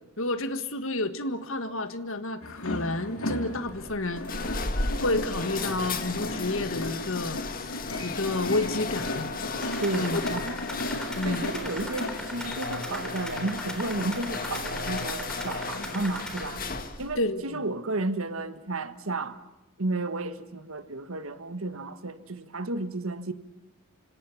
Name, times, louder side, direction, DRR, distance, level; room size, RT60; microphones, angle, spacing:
voice 1, 0.2-4.5 5.0-9.3 9.9-10.2 11.2-11.4 17.1-17.6, left 2 dB, 65° left, 1.7 m, -30 dB
sound 1, 2.4-12.3, left 1 dB, 80° left, 2.7 m, -35 dB
sound 2, 3.7-17.2, left 3 dB, 40° left, 1.9 m, -35 dB
sound 3, 9.6-16.5, equal, 5° left, 3.7 m, -40 dB
voice 2, 9.8-10.6 11.2-16.6 17.0-19.4 19.8-23.3, right 2 dB, 65° right, 1.5 m, -32 dB
27.0 x 26.0 x 7.3 m
head